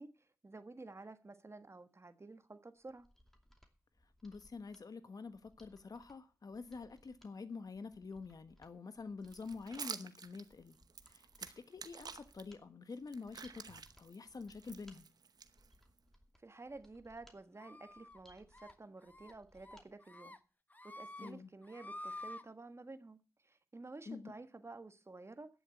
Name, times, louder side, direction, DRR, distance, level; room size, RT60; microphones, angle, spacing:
voice 1, 0.0-3.1 16.4-20.4 20.8-23.2 23.4-25.5, right 3 dB, 45° right, 1.4 m, -52 dB
Mechanisms, 2.8-19.9 20.2-20.3, equal, 5° left, 2.6 m, -67 dB
voice 2, 4.2-10.8 11.1-15.1 21.2-21.5 24.1-24.3, left 4 dB, 70° left, 1.2 m, -47 dB
sound 1, 9.2-12.4 12.9-16.0, right 6 dB, 80° right, 0.9 m, -49 dB
sound 2, 17.6-18.2 18.5-18.7 19.1-19.3 19.6-20.4 20.7-21.3 21.6-22.4, left 1 dB, 25° left, 1.0 m, -49 dB
11.5 x 7.2 x 8.5 m
cardioid pair, 40°, 7 cm